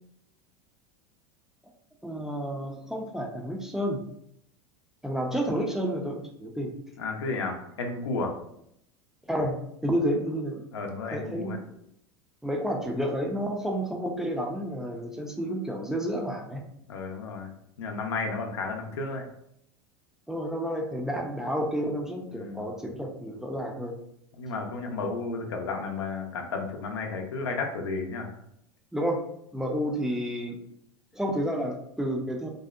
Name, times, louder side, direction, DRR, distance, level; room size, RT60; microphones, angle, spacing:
voice 1, 2.0-4.0 5.0-6.7 9.3-9.6 9.8-10.6 11.1-11.5 12.4-16.6 20.3-23.9 28.9-29.2 29.5-30.6 31.1-32.5, equal, 5° right, 1 dB, 0.4 m, -30 dB
voice 2, 7.0-8.3 10.7-11.6 16.9-17.5 17.8-19.2 22.3-22.7 24.4-28.3, left 3 dB, 90° left, 3 dB, 0.5 m, -32 dB
2.6 x 2.0 x 2.3 m, 0.74 s
hypercardioid pair, 100°, 14 cm